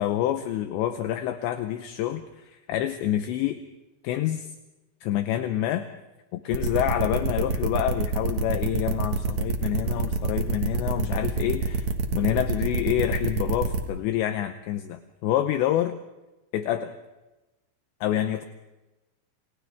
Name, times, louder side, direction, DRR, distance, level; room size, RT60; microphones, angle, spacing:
voice 1, 0.0-3.6 4.0-4.5 5.0-5.9 6.3-11.9 12.1-15.9 16.5-16.9 18.0-18.4, left 12 dB, 80° left, 8 dB, 2.7 m, -27 dB
sound 1, 6.5-13.8, right 4 dB, 75° right, 1.6 m, -26 dB
29.5 x 28.0 x 3.5 m, 1.1 s
omnidirectional pair, 5.9 m